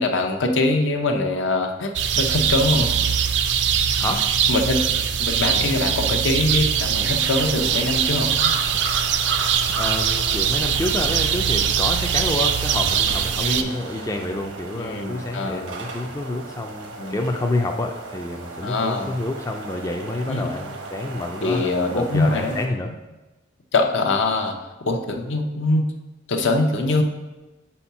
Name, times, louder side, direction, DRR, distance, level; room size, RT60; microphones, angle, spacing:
voice 1, 0.0-1.9 2.2-3.0 4.5-4.8 5.2-8.6 13.4-13.7 14.7-15.6 16.9-17.2 18.6-19.1 20.3-20.5 21.4-22.6 23.7-24.6 24.8-25.9 26.3-27.0, left 2 dB, 75° left, 4 dB, 0.7 m, -23 dB
sound 1, 1.9-13.6, right 8 dB, 60° right, 0.4 m, -22 dB
voice 2, 4.0-4.3 9.7-22.9, left 2 dB, 15° left, 3 dB, 0.3 m, -28 dB
sound 2, 6.7-22.7, right 3 dB, 85° right, 1.0 m, -36 dB
4.6 x 4.3 x 5.6 m, 1.1 s
head